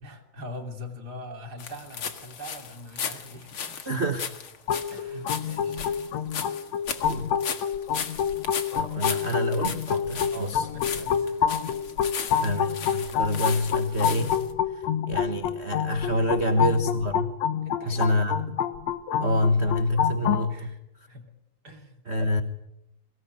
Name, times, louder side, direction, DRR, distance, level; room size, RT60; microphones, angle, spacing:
voice 1, 0.0-3.8 4.9-5.8 10.3-11.5 16.2-16.5 17.6-18.2 20.5-20.8 21.1-21.3 21.6-22.0, left 1 dB, 30° right, 4 dB, 3.3 m, -42 dB
sound 1, 1.6-14.5, left 7 dB, 50° left, 2.4 m, -36 dB
voice 2, 3.9-4.3 5.1-5.3 7.1-7.3 8.7-10.7 12.4-14.4 15.1-17.3 17.8-18.4 19.2-20.8 22.1-22.4, left 1 dB, 75° right, 7 dB, 0.6 m, -27 dB
sound 2, 4.7-20.4, left 8 dB, 65° left, 2.3 m, -28 dB
24.0 x 18.5 x 9.5 m, 0.89 s
omnidirectional pair, 3.5 m